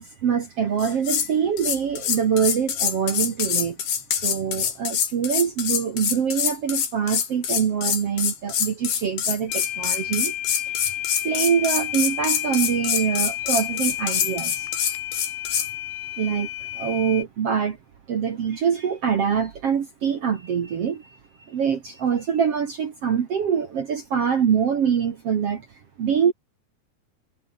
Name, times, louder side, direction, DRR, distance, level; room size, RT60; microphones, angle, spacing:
voice 1, 0.0-3.8 4.1-10.3 11.2-14.7 15.5-15.6 16.2-16.5 16.7-17.8 18.1-25.7 26.0-26.3, right 7 dB, 55° right, 1.9 m, -24 dB
sound 1, 0.8-1.3 1.6-15.7, left 8 dB, 65° left, 4.8 m, -25 dB
sound 2, 9.5-17.2, left 13 dB, 90° left, 3.7 m, -31 dB
omnidirectional pair, 4.8 m